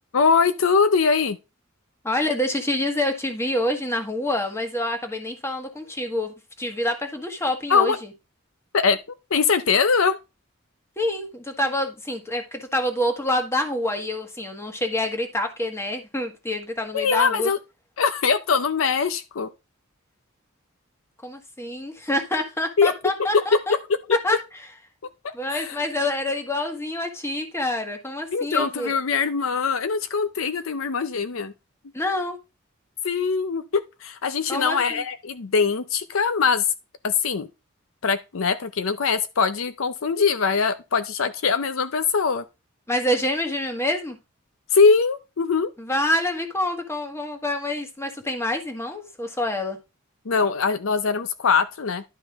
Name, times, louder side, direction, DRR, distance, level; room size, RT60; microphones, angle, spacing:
voice 1, 0.1-1.4 7.7-8.0 8.7-9.0 9.3-10.2 16.9-17.6 18.0-19.5 22.8-22.9 23.3-23.4 25.5-25.8 28.3-31.5 33.0-33.6 34.0-36.7 37.0-37.5 38.0-42.4 44.7-45.7 50.3-52.0, left 5 dB, 70° left, 0.6 m, -22 dB
voice 2, 2.0-8.1 11.0-17.5 21.2-23.7 24.1-24.4 25.3-28.9 31.9-32.4 34.5-35.0 42.9-44.2 45.8-49.8, left 1 dB, 15° left, 1.4 m, -27 dB
11.5 x 5.3 x 3.5 m
head